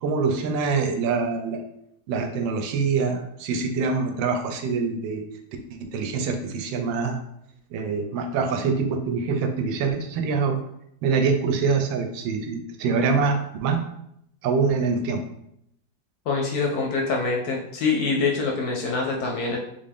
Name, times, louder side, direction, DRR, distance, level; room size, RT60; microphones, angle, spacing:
voice 1, 0.0-1.6 2.1-5.2 5.9-7.2 7.7-10.6 11.0-13.8 14.4-15.2, right 5 dB, 85° right, 5 dB, 1.3 m, -24 dB
voice 2, 16.3-19.6, left 4 dB, 70° left, 0 dB, 0.9 m, -25 dB
3.6 x 2.5 x 3.4 m, 0.76 s
omnidirectional pair, 2.0 m